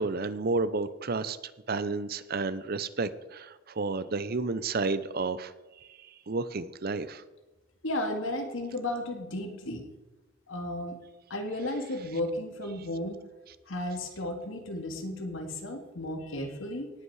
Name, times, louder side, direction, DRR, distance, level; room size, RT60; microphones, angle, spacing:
voice 1, 0.0-1.4 1.7-5.5 6.3-7.2, right 3 dB, 50° right, 15 dB, 0.6 m, -31 dB
voice 2, 7.8-9.9 10.5-11.0 11.3-13.2 13.7-16.9, left 1 dB, 80° left, 4 dB, 2.1 m, -34 dB
18.5 x 8.3 x 4.8 m, 1.1 s
head